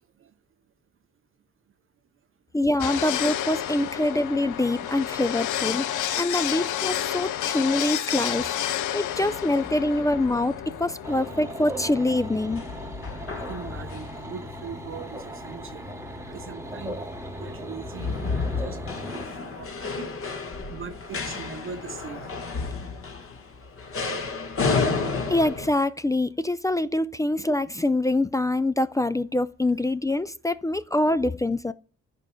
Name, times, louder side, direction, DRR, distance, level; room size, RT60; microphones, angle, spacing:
voice 1, 2.5-5.9 6.2-12.6 25.3-31.7, left 2 dB, 10° left, 0.3 m, -25 dB
sound 1, 2.8-12.9, left 11 dB, 80° left, 0.6 m, -31 dB
sound 2, 9.1-25.7, left 4 dB, 45° left, 1.4 m, -33 dB
sound 3, 11.0-19.2, equal, 10° right, 1.0 m, -38 dB
voice 2, 13.4-15.9 16.3-17.0 17.4-20.1 20.7-22.3, right 6 dB, 45° right, 0.6 m, -41 dB
14.5 x 4.9 x 2.2 m
cardioid pair, 90°, 30 cm